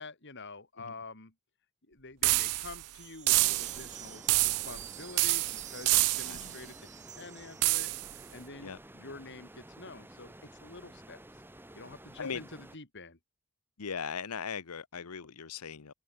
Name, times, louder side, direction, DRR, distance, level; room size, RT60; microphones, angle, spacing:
voice 1, 0.0-1.3 1.9-6.8 7.1-7.9 8.3-11.2 11.7-13.2, left 3 dB, 50° left, 3.1 m, -47 dB
sound 1, 2.2-2.8 3.3-3.9 4.3-4.9 5.2-6.5 7.6-8.1, right 22 dB, 85° right, 0.4 m, -27 dB
sound 2, 2.8-8.2, right 10 dB, 35° right, 3.6 m, -49 dB
sound 3, 3.3-12.8, right 1 dB, 10° right, 2.6 m, -52 dB
voice 2, 13.8-15.9, left 6 dB, 85° left, 0.8 m, -38 dB
head